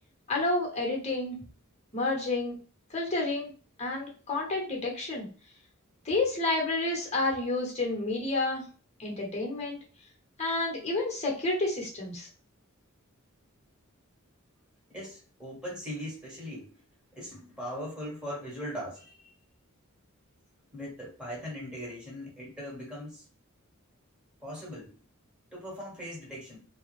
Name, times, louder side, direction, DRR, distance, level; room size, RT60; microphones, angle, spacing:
voice 1, 0.3-1.4 1.9-2.6 2.9-3.5 3.8-5.3 6.0-8.6 9.0-9.8 10.4-12.3, left 2 dB, 30° left, 0 dB, 1.1 m, -30 dB
voice 2, 14.9-16.7 17.1-19.3 20.7-23.2 24.4-24.9 25.5-26.6, equal, 5° right, -4 dB, 1.2 m, -40 dB
3.4 x 2.0 x 3.1 m, 0.38 s
head